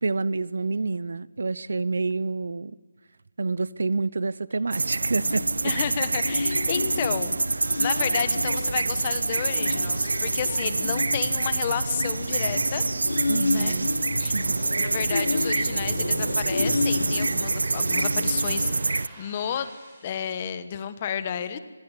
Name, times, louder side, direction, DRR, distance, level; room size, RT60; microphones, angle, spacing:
voice 1, 0.0-2.8 3.4-5.5 13.3-13.9 14.3-14.6, right 3 dB, 60° right, 20 dB, 0.9 m, -28 dB
sound 1, 4.7-19.1, right 3 dB, 90° right, 0.9 m, -26 dB
sound 2, 5.3-18.8, left 3 dB, 70° left, 3.8 m, -32 dB
voice 2, 5.6-7.4 7.8-12.8 13.5-13.8 14.2-14.4 14.8-18.7 19.2-19.7 20.0-21.6, left 8 dB, 20° left, 13 dB, 1.2 m, -31 dB
sound 3, 12.9-20.1, right 1 dB, 10° right, 5.4 m, -52 dB
26.0 x 22.0 x 9.8 m, 1.3 s
hypercardioid pair, 180°, 0 cm